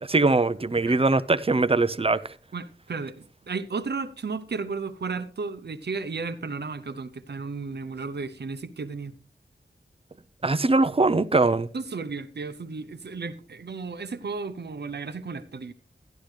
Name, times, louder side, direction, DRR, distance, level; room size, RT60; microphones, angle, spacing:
voice 1, 0.0-2.3 10.4-11.7, right 3 dB, 30° right, 0.5 m, -22 dB
voice 2, 2.5-9.2 11.7-15.7, right 4 dB, 65° right, 0.7 m, -34 dB
12.0 x 11.5 x 3.3 m
wide cardioid pair, 75°, 19 cm